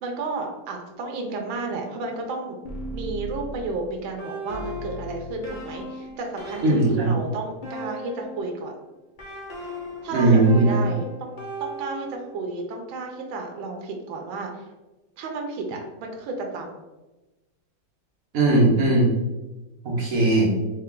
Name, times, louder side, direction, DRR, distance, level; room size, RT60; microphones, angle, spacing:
voice 1, 0.0-2.6 2.9-8.7 10.0-14.6 15.2-16.7, right 3 dB, 85° right, 1 dB, 1.6 m, -32 dB
sound 1, 2.6-8.6 9.2-12.4, equal, 40° left, 0.7 m, -37 dB
voice 2, 6.6-7.1 10.1-10.9 18.3-19.1 19.8-20.5, right 2 dB, 50° right, -4 dB, 1.6 m, -18 dB
4.1 x 3.3 x 3.7 m, 1.1 s
omnidirectional pair, 2.1 m